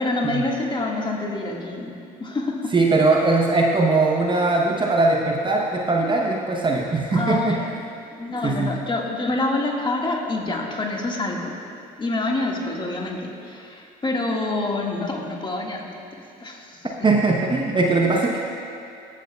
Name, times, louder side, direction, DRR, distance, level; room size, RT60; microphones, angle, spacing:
voice 1, 0.0-2.7 4.3-4.5 7.1-7.7 8.1-11.6 12.0-16.9, left 2 dB, 25° left, 0 dB, 1.7 m, -27 dB
voice 2, 2.7-7.6 8.4-8.7 17.0-18.4, right 3 dB, 25° right, 0 dB, 0.8 m, -20 dB
20.5 x 7.4 x 2.3 m, 2.5 s
hypercardioid pair, 65°, 20 cm